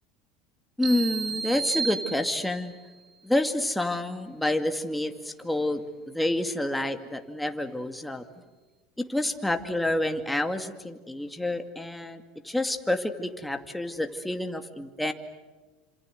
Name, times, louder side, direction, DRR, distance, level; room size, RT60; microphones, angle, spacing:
voice 1, 0.8-2.7 3.2-8.3 9.0-15.1, left 1 dB, 5° left, 7 dB, 2.3 m, -28 dB
sound 1, 0.8-2.8, right 5 dB, 40° right, 5.3 m, -32 dB
27.5 x 27.0 x 8.1 m, 1.3 s
hypercardioid pair, 90°, 0 cm